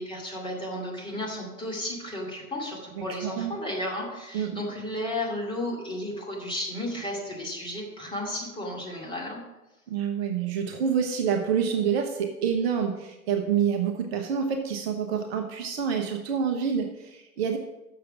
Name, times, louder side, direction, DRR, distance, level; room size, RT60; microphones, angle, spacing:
voice 1, 0.0-9.4, left 1 dB, 10° left, -3 dB, 2.4 m, -33 dB
voice 2, 3.0-3.5 4.3-4.6 9.9-17.6, right 7 dB, 45° right, 4 dB, 1.0 m, -27 dB
6.9 x 6.4 x 5.8 m, 1.0 s
figure-of-eight pair, 95°, 42 cm